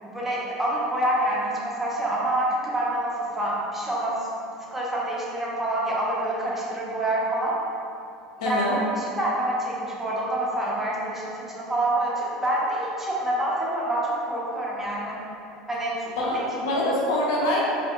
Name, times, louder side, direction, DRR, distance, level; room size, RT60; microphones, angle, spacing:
voice 1, 0.0-4.3 4.7-7.6 8.4-15.2 15.7-16.4 17.4-17.6, right 1 dB, 10° right, -6 dB, 1.1 m, -27 dB
voice 2, 8.4-8.7 16.2-17.6, left 1 dB, 75° left, -4 dB, 0.7 m, -25 dB
4.8 x 3.3 x 2.4 m, 2.7 s
hypercardioid pair, 85°, 3 cm